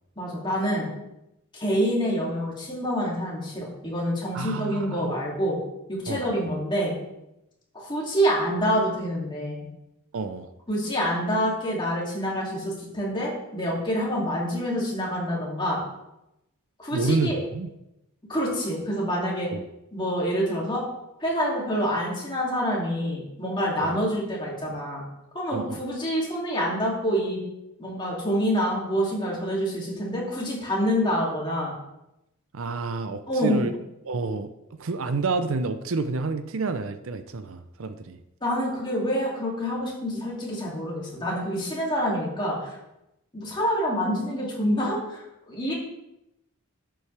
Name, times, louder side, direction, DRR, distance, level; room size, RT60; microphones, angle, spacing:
voice 1, 0.2-0.9 1.5-5.6 5.9-6.9 7.7-9.6 10.7-15.8 16.8-17.4 18.3-19.5 19.9-20.8 21.2-25.0 25.3-27.4 27.8-31.7 33.3-33.6 38.4-42.7 43.3-45.7, equal, 20° left, -4 dB, 2.6 m, -27 dB
voice 2, 4.3-5.1 6.1-6.5 10.1-10.5 16.9-17.7 19.5-19.6 23.8-24.0 25.5-25.8 32.5-33.7 34.1-38.2, right 3 dB, 65° right, 10 dB, 0.6 m, -29 dB
11.0 x 7.8 x 3.4 m, 0.89 s
head